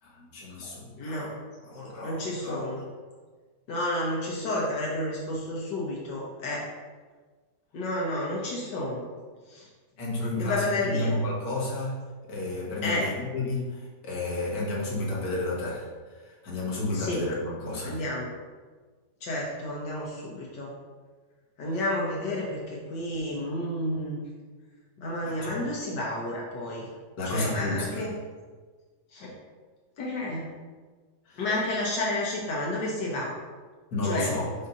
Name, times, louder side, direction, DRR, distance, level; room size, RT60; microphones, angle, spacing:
voice 1, 0.0-1.4 1.6-2.8 10.0-18.0 25.2-25.6 27.2-28.1 31.3-31.4 33.9-34.5, left 2 dB, 60° left, -4 dB, 1.8 m, -32 dB
voice 2, 1.0-1.3 2.0-2.8 3.7-6.7 7.7-9.1 9.5-9.7 10.4-11.1 12.8-13.0 16.9-17.2 17.8-18.3 19.2-20.7 21.6-24.2 25.0-26.9 27.2-28.1 29.1-29.3 30.0-30.5 31.4-33.3 34.0-34.3, left 1 dB, 80° left, -4 dB, 1.6 m, -31 dB
7.5 x 2.8 x 5.4 m, 1.4 s
omnidirectional pair, 1.9 m